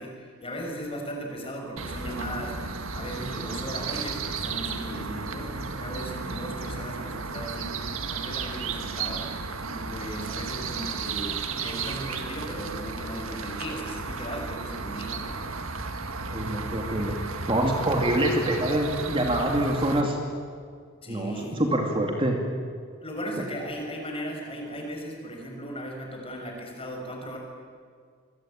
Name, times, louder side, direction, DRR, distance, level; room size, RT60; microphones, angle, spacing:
voice 1, 0.0-2.6 2.9-7.8 8.1-9.3 9.7-15.4 21.0-21.6 23.0-27.4, equal, 25° left, 1 dB, 6.4 m, -37 dB
sound 1, 1.8-20.0, right 4 dB, 65° right, 1.9 m, -34 dB
voice 2, 16.3-17.2 17.5-20.2 21.1-22.4, right 1 dB, 25° right, 2 dB, 2.6 m, -25 dB
27.0 x 23.0 x 9.1 m, 2.1 s
head